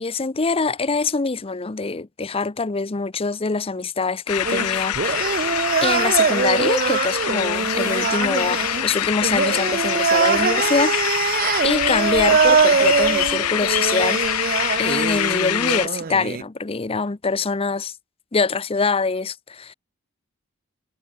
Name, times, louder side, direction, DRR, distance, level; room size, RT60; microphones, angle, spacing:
voice 1, 0.0-5.4 5.8-11.4 11.6-17.9 18.3-19.7, left 4 dB, 25° left, 0.6 m, -24 dB
sound 1, 4.3-15.9, left 12 dB, 85° left, 0.6 m, -25 dB
sound 2, 4.4-16.4, right 6 dB, 40° right, 0.5 m, -22 dB
head